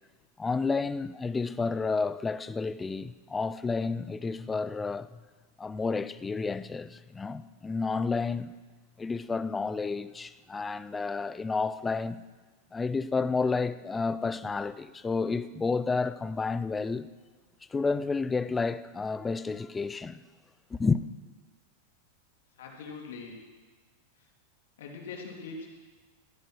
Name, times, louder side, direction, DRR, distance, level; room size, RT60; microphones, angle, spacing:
voice 1, 0.4-5.2 5.6-8.5 9.0-12.2 12.7-17.1 17.7-20.2 20.7-21.0, left 4 dB, 10° left, 0.4 m, -30 dB
voice 2, 22.6-23.4 24.8-25.7, left 4 dB, 80° left, 3.0 m, -41 dB
14.0 x 9.3 x 6.2 m
supercardioid pair, 145°, 0 cm